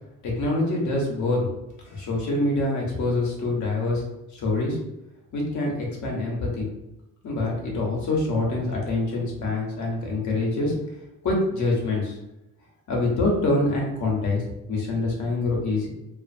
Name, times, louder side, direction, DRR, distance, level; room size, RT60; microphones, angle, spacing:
voice 1, 0.2-1.5 1.8-4.0 4.3-4.8 5.3-6.7 7.2-10.7 11.2-12.2 12.9-14.4 14.7-15.9, left 2 dB, 60° left, -2 dB, 1.0 m, -25 dB
2.5 x 2.4 x 2.5 m, 0.91 s
supercardioid pair, 65°, 33 cm